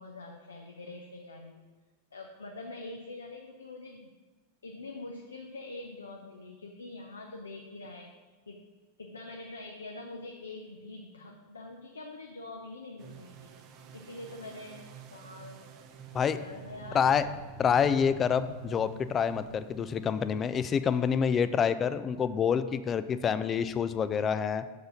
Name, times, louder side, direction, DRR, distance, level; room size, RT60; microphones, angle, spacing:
voice 1, 0.0-1.6 2.1-4.1 4.6-8.1 8.5-8.6 9.0-13.6 13.9-15.6 16.3-17.2 17.8-18.1, left 2 dB, 75° left, 1 dB, 0.7 m, -44 dB
sound 1, 10.8-10.9 16.2-20.7, right 1 dB, 60° right, 1.3 m, -49 dB
sound 2, 13.0-21.6, right 7 dB, 40° right, 0.7 m, -50 dB
voice 2, 16.9-17.3 17.6-24.7, left 7 dB, 25° left, 13 dB, 0.4 m, -27 dB
6.3 x 4.8 x 6.6 m, 1.3 s
figure-of-eight pair, 90°, 0 cm